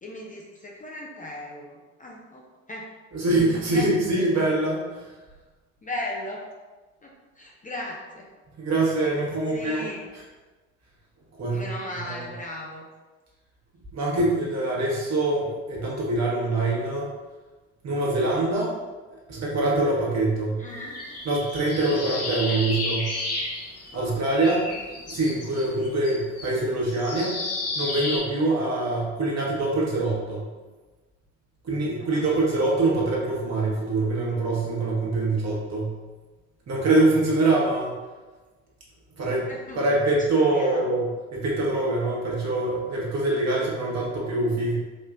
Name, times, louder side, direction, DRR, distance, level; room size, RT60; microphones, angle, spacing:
voice 1, 0.0-2.9 3.7-3.9 5.8-6.5 7.0-8.3 9.5-10.0 11.5-12.9 20.6-21.0 22.5-22.6 23.9-24.4 32.0-32.2 39.5-39.9 40.4-40.9, left 1 dB, 20° left, -2 dB, 0.6 m, -37 dB
voice 2, 3.1-5.0 8.6-9.9 11.3-11.7 12.0-12.3 13.9-17.1 17.8-18.7 19.3-20.6 21.2-23.1 23.9-24.6 25.1-27.4 27.7-30.5 31.6-35.9 36.7-37.9 39.2-39.5 39.7-44.8, right 2 dB, 45° right, -4 dB, 1.4 m, -24 dB
sound 1, 20.7-24.1 24.3-28.2, left 2 dB, 40° left, 1.0 m, -32 dB
4.3 x 3.0 x 2.5 m, 1.3 s
hypercardioid pair, 55°, 38 cm